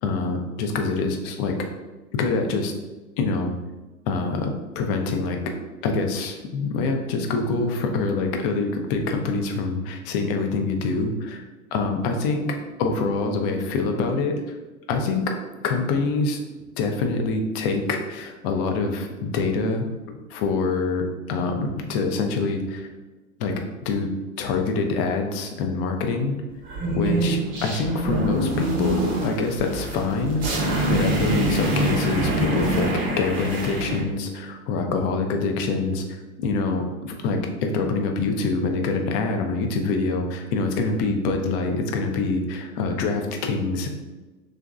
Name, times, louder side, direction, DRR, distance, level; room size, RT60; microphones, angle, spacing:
voice 1, 0.0-1.5 2.1-2.7 3.2-3.5 4.1-5.4 5.8-11.4 11.7-12.5 12.8-14.6 14.9-15.2 15.6-16.4 16.8-22.9 23.4-23.5 23.8-24.1 24.4-26.4 26.9-30.5 30.9-43.9, left 3 dB, 40° left, 4 dB, 0.5 m, -25 dB
sound 1, 26.6-34.0, right 1 dB, 30° right, 0.7 m, -25 dB
2.9 x 2.5 x 2.4 m, 1.2 s
hypercardioid pair, 110°, 43 cm